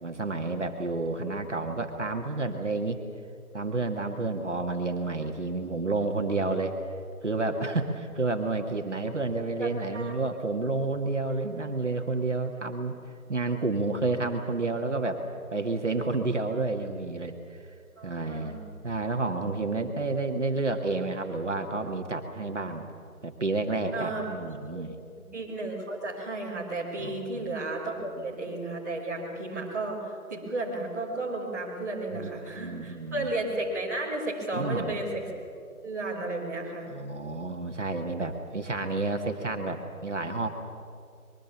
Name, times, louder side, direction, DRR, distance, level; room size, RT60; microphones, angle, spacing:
voice 1, 0.0-3.0 3.5-6.8 7.2-13.0 13.3-15.2 15.5-17.7 18.0-22.9 23.2-25.0 27.0-27.5 28.0-28.3 32.1-33.3 34.5-35.0 36.9-40.5, right 3 dB, 50° right, 4 dB, 1.9 m, -30 dB
voice 2, 9.6-10.1 18.0-18.6 23.9-24.3 24.7-24.8 25.3-30.0 30.3-35.2 35.8-36.9, right 2 dB, 10° right, -8 dB, 2.3 m, -33 dB
24.5 x 22.0 x 7.2 m, 2.5 s
figure-of-eight pair, 175°, 45 cm